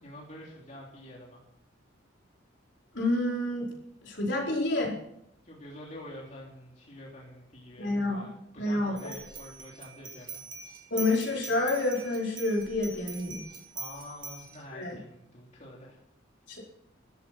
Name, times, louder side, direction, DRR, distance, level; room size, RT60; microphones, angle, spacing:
voice 1, 0.0-1.4 5.4-10.4 13.7-16.0, left 1 dB, 35° left, -3 dB, 3.4 m, -47 dB
voice 2, 2.9-3.7 4.0-4.9 7.8-8.3 8.6-9.0 10.9-13.4 14.7-15.0 16.5-16.6, left 2 dB, 65° left, -2 dB, 4.8 m, -28 dB
sound 1, 9.0-14.6, right 4 dB, 25° right, 2.0 m, -43 dB
14.0 x 13.5 x 6.1 m, 0.76 s
head